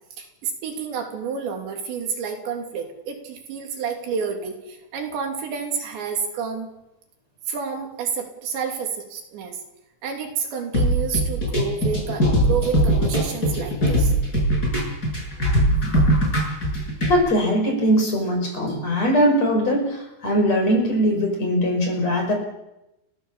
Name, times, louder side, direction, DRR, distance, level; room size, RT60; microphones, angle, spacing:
voice 1, 0.2-6.7 7.5-9.6 10.0-14.1 16.0-16.2, right 6 dB, 85° right, 2 dB, 5.4 m, -29 dB
sound 1, 10.7-17.1, equal, 20° left, 7.5 m, -20 dB
voice 2, 17.1-22.3, equal, 40° left, 3 dB, 6.2 m, -21 dB
30.0 x 15.5 x 7.5 m, 0.91 s
omnidirectional pair, 5.0 m